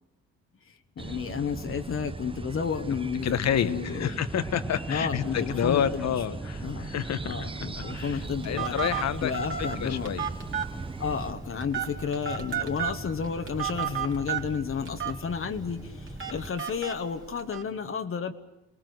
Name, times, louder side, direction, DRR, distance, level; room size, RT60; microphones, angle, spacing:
voice 1, 0.6-4.2 4.9-6.9 7.2-8.9 9.2-10.2 11.0-18.3, left 6 dB, 45° left, 6 dB, 1.3 m, -32 dB
sound 1, 1.0-11.3, right 4 dB, 20° right, 0.8 m, -38 dB
voice 2, 3.2-9.3 9.6-10.3, left 9 dB, 60° left, 12 dB, 1.2 m, -29 dB
sound 2, 4.3-16.5, right 1 dB, ahead, 1.5 m, -42 dB
Telephone, 7.8-17.6, right 9 dB, 40° right, 3.1 m, -35 dB
28.5 x 19.0 x 8.0 m, 0.94 s
cardioid pair, 90°, 30 cm